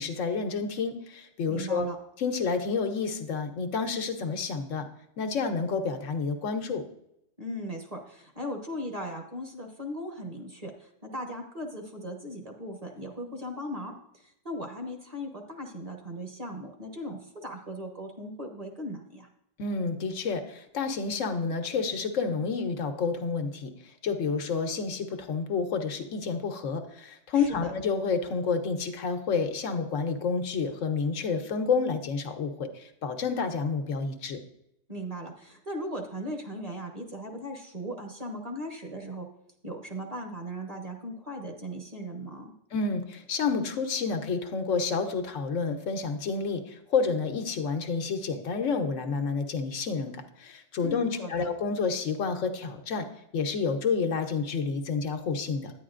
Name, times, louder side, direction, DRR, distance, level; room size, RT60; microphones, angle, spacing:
voice 1, 0.0-1.9 2.2-4.9 5.2-6.8 19.6-23.7 24.0-34.4 42.7-50.1 50.4-53.1 53.3-55.7, left 5 dB, 80° left, 6 dB, 1.1 m, -29 dB
voice 2, 1.5-2.0 7.4-19.3 27.3-27.7 34.9-39.3 39.6-42.5 50.8-51.5, equal, 35° right, 1 dB, 1.1 m, -38 dB
9.8 x 9.3 x 2.5 m, 0.79 s
omnidirectional pair, 1.3 m